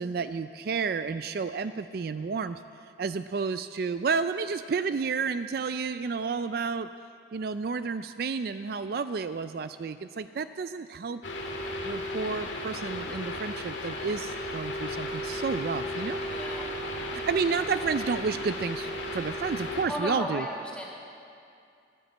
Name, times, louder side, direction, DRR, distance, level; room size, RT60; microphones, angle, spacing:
voice 1, 0.0-2.6 3.0-6.9 7.3-11.2 11.8-16.2 17.3-20.5, right 5 dB, 55° right, 11 dB, 0.4 m, -31 dB
sound 1, 11.2-19.9, left 1 dB, 85° left, 1.8 m, -34 dB
voice 2, 16.3-16.7 19.9-20.9, left 1 dB, 5° left, -3 dB, 2.2 m, -34 dB
14.5 x 11.0 x 7.9 m, 2.5 s
head